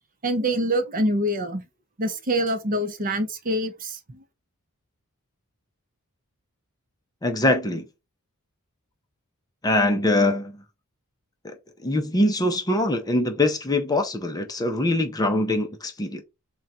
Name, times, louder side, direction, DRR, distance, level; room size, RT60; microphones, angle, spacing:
voice 1, 0.2-1.6 2.0-4.2, right 1 dB, 40° right, 0.7 m, -25 dB
voice 2, 7.2-7.9 9.6-10.6 11.4-11.5 11.8-16.2, left 1 dB, 15° left, 0.6 m, -23 dB
3.8 x 2.3 x 4.1 m
head